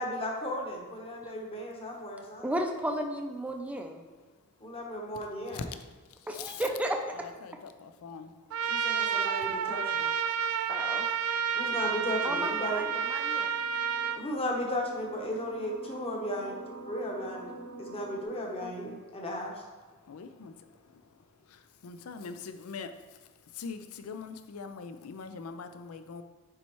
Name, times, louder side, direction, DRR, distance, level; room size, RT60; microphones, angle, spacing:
voice 1, 0.0-2.5 4.6-5.7 8.6-10.1 11.5-12.8 14.2-16.6 16.9-19.5, equal, 25° left, -1 dB, 1.1 m, -35 dB
voice 2, 2.4-4.0 6.3-7.1 10.7-11.1 12.2-13.5 18.6-19.0, right 1 dB, 5° right, 2 dB, 0.5 m, -34 dB
voice 3, 5.2-5.6 6.1-6.6 7.1-8.3 20.1-21.0 21.5-23.0 23.5-26.2, left 5 dB, 75° left, 9 dB, 0.4 m, -43 dB
Trumpet, 8.5-14.2, right 7 dB, 85° right, 0.4 m, -30 dB
sound 1, 13.1-18.2, right 3 dB, 60° right, 1.0 m, -46 dB
9.8 x 4.2 x 3.0 m, 1.3 s
head